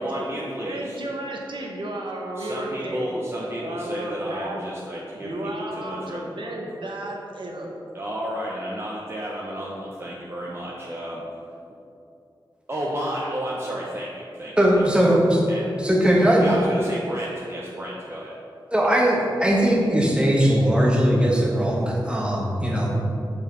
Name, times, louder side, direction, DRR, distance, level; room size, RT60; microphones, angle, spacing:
voice 1, 0.0-1.0 2.4-6.2 7.9-11.2 12.7-14.6 14.9-15.0 15.5-15.6 16.4-18.3, equal, 30° right, -5 dB, 1.0 m, -32 dB
voice 2, 0.6-3.1 3.6-4.7 5.1-7.7, right 1 dB, 70° right, -1 dB, 1.3 m, -33 dB
voice 3, 14.6-15.4 15.8-16.5 18.7-23.0, equal, 10° right, -3 dB, 1.5 m, -19 dB
6.7 x 5.6 x 5.4 m, 2.6 s
wide cardioid pair, 75°, 9 cm